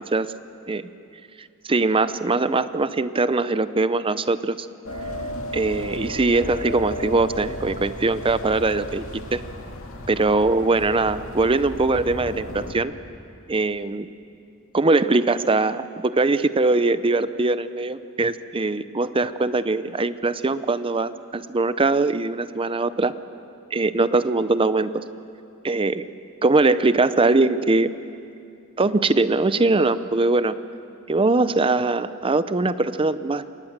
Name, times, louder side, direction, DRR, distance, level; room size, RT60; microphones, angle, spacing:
voice 1, 1.6-4.7 5.5-9.0 9.3-9.4 10.1-12.9 13.5-14.1 14.7-23.1 23.7-25.0 25.6-26.1 26.4-28.0 28.8-30.6 31.1-33.4, right 3 dB, 25° right, 14 dB, 0.6 m, -21 dB
sound 1, 4.8-12.7, left 1 dB, 65° left, 2.3 m, -34 dB
26.5 x 19.5 x 7.4 m, 2.5 s
head